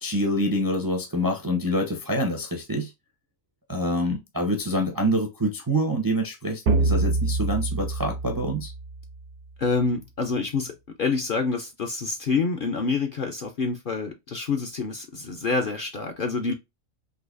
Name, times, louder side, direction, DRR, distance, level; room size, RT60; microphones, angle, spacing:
voice 1, 0.0-2.9 3.7-8.7, equal, 25° right, 0.4 m, -26 dB
sound 1, 6.7-9.3, right 3 dB, 70° right, 0.8 m, -26 dB
voice 2, 9.6-16.5, left 4 dB, 50° left, 0.7 m, -27 dB
3.9 x 2.8 x 2.4 m
omnidirectional pair, 1.4 m